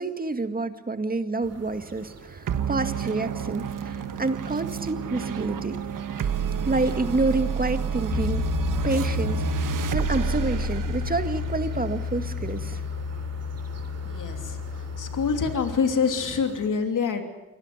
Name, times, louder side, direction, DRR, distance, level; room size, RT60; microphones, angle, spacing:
voice 1, 0.0-5.8 6.6-8.4 8.8-12.8, right 3 dB, 30° right, 9 dB, 1.9 m, -28 dB
sound 1, 1.4-16.7, right 4 dB, 50° right, 2.9 m, -46 dB
sound 2, 2.5-13.3, right 7 dB, 80° right, 1.4 m, -30 dB
Piano, 8.1-15.8, left 6 dB, 60° left, 1.5 m, -31 dB
voice 2, 14.0-17.2, left 5 dB, 75° left, 5 dB, 3.0 m, -26 dB
24.0 x 18.0 x 9.7 m, 1.0 s
cardioid pair, 95°, 31 cm